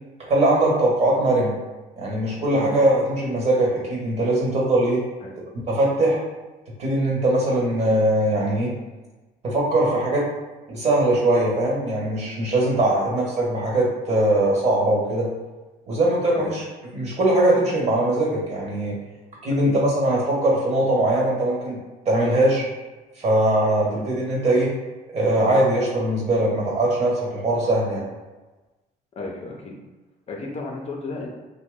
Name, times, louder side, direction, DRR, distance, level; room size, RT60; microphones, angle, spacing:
voice 1, 0.2-1.5 2.0-5.0 5.7-6.2 6.8-8.7 9.4-10.2 10.7-15.3 15.9-16.6 16.9-18.9 19.4-21.8 22.0-22.7 23.2-24.7 25.1-28.0, right 1 dB, 40° right, -4 dB, 1.3 m, -21 dB
voice 2, 29.2-29.8 30.3-31.3, left 3 dB, 40° left, 0 dB, 0.5 m, -33 dB
3.1 x 2.2 x 3.5 m, 1.2 s
cardioid pair, 110°, 17 cm